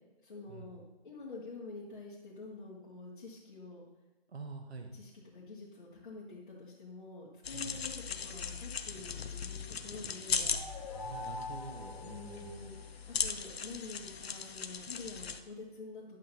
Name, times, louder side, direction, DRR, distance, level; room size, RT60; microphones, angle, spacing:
voice 1, 0.2-3.8 4.9-10.4 12.0-12.8 13.1-16.2, left 3 dB, 50° left, -8 dB, 2.0 m, -47 dB
voice 2, 4.3-4.9 7.5-7.8 10.4-10.6 10.9-12.7, right 4 dB, 80° right, 5 dB, 1.2 m, -46 dB
sound 1, 7.4-15.4, left 6 dB, 70° left, 0.8 m, -39 dB
sound 2, 10.1-13.0, left 3 dB, 10° left, 0.6 m, -45 dB
11.0 x 7.3 x 2.9 m, 1.1 s
hypercardioid pair, 175°, 32 cm